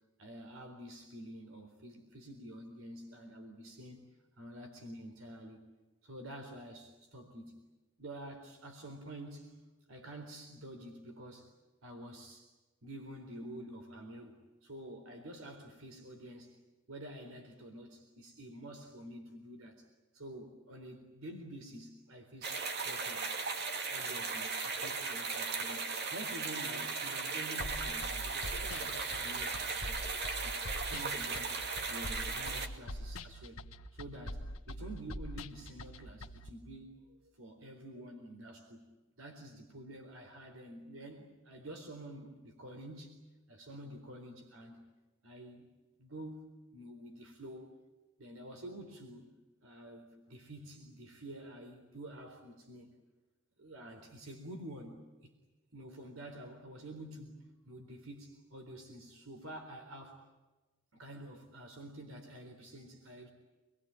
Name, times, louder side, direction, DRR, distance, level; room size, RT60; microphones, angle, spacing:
voice 1, 0.2-4.0 4.4-5.7 6.0-7.6 8.0-9.6 9.9-11.5 11.8-12.5 12.8-16.6 16.9-19.9 20.1-23.2 23.5-31.6 31.9-33.6 33.9-38.9 39.2-43.2 43.5-44.8 45.2-47.8 48.2-53.0 53.6-55.3 55.7-60.2 60.9-63.3, right 1 dB, 80° right, 4 dB, 4.0 m, -49 dB
sound 1, 22.4-32.7, right 4 dB, 50° right, 2.7 m, -37 dB
sound 2, 27.6-36.5, equal, 85° left, 1.2 m, -44 dB
27.0 x 22.5 x 8.9 m, 1.2 s
head